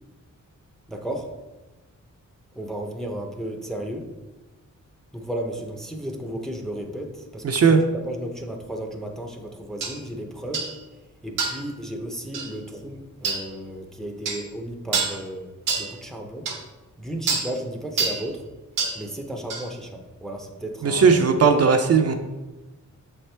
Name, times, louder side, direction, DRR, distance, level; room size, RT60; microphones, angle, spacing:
voice 1, 0.9-1.3 2.5-4.0 5.1-7.4 8.0-10.7 11.2-15.5 15.8-16.5 17.0-18.4 19.0-21.2, right 1 dB, ahead, 2 dB, 0.6 m, -34 dB
voice 2, 7.4-7.8 20.8-22.1, right 5 dB, 50° right, 5 dB, 0.5 m, -17 dB
sound 1, 9.8-9.9 10.5-10.7 11.4-11.7 12.3-12.5 13.2-13.4 14.2-14.4 14.9-15.2 15.7-15.9 16.4-16.6 17.3-17.5 18.0-18.2 18.8-19.0 19.5-19.6, right 4 dB, 85° right, 1.0 m, -26 dB
7.0 x 4.4 x 3.3 m, 1.1 s
wide cardioid pair, 160°, 31 cm